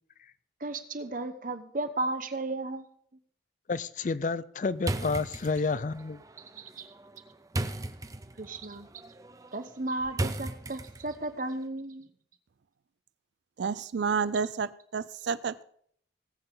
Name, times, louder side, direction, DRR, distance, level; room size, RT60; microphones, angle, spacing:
voice 1, 0.6-2.9 6.5-6.9 8.4-8.9 9.5-12.1, right 2 dB, 45° right, 0.9 m, -34 dB
voice 2, 3.7-6.2, left 4 dB, 45° left, 0.4 m, -30 dB
sound 1, 4.8-11.3, right 1 dB, 20° right, 0.5 m, -37 dB
voice 3, 13.6-15.6, right 5 dB, 70° right, 0.4 m, -30 dB
18.5 x 7.9 x 3.9 m
head